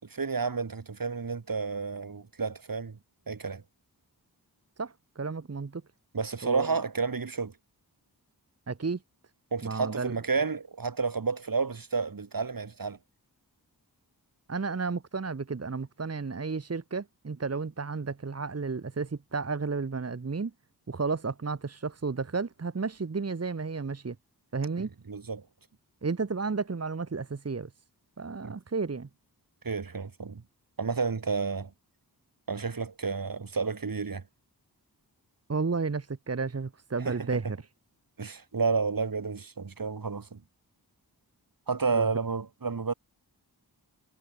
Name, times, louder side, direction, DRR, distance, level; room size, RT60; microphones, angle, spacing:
voice 1, 0.0-3.0 3.3-3.6 6.1-7.6 9.5-13.0 24.8-25.5 28.4-28.6 29.6-30.4 30.8-31.7 32.5-34.2 37.0-37.5 38.2-40.4 41.7-42.9, right 4 dB, 60° right, 6.1 m, -31 dB
voice 2, 4.8-5.8 6.4-6.7 8.7-9.0 9.6-10.2 14.5-20.5 20.9-24.1 24.5-24.9 26.0-27.7 28.2-29.1 35.5-37.6 41.9-42.1, right 4 dB, 40° right, 1.7 m, -32 dB
wide cardioid pair, 115°, 39 cm